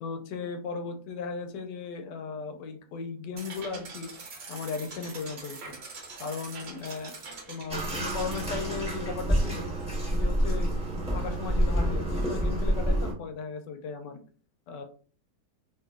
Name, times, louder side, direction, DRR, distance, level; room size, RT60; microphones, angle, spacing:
voice 1, 0.0-4.1 4.5-5.8 6.2-7.1 7.5-9.7 10.1-10.7 11.1-14.2 14.7-14.8, left 5 dB, 90° left, 5 dB, 1.2 m, -36 dB
sound 1, 3.4-8.5, right 4 dB, 50° right, 0.8 m, -43 dB
Bathtub (filling or washing), 7.7-13.1, equal, 5° right, 0.8 m, -28 dB
2.9 x 2.9 x 2.3 m, 0.41 s
omnidirectional pair, 1.8 m